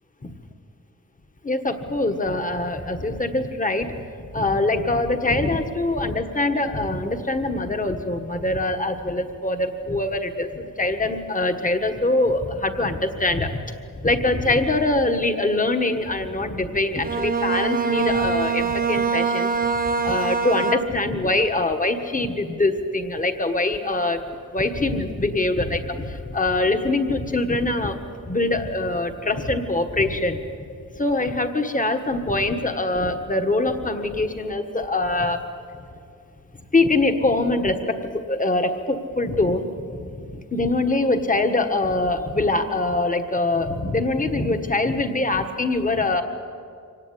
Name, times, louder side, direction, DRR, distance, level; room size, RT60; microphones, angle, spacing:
voice 1, 1.4-13.6 14.0-19.5 19.9-24.2 24.5-28.0 28.2-30.4 30.9-35.4 36.7-46.2, left 2 dB, 25° left, 7 dB, 1.5 m, -23 dB
Bowed string instrument, 17.0-21.2, right 5 dB, 25° right, 1.2 m, -24 dB
25.0 x 18.0 x 9.9 m, 2.5 s
wide cardioid pair, 165°, 33 cm